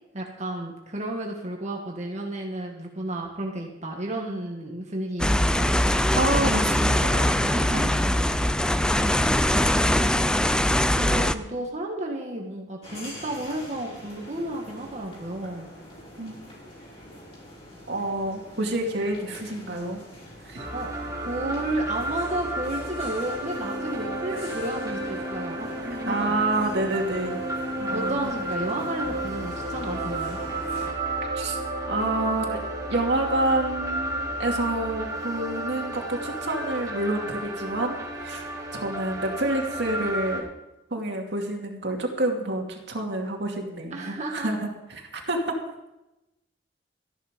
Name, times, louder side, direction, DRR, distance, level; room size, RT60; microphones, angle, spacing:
voice 1, 0.1-5.7 7.4-8.2 10.9-15.7 20.7-20.9 21.2-26.3 27.9-30.4 43.9-44.5, right 1 dB, 40° right, 0 dB, 1.7 m, -32 dB
sound 1, 5.2-11.3, left 1 dB, 5° left, 0.5 m, -22 dB
voice 2, 6.2-7.8 16.2-16.3 17.9-20.0 20.4-20.7 24.3-24.5 26.1-27.4 27.8-28.3 31.3-31.6 31.9-32.6 32.9-40.4 40.9-45.5, right 1 dB, 70° right, 1 dB, 2.5 m, -28 dB
sound 2, 12.8-30.9, equal, 35° left, 5.6 m, -44 dB
sound 3, 20.6-40.4, right 1 dB, 20° right, 3.7 m, -32 dB
14.0 x 11.0 x 5.2 m, 0.96 s
head